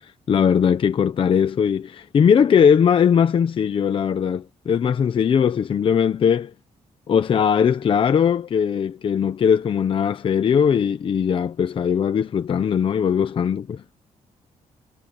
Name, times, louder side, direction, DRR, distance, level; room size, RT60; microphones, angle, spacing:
voice 1, 0.3-6.5 7.1-13.8, left 7 dB, 45° left, 0.9 m, -19 dB
wide cardioid pair, 165°, 13 cm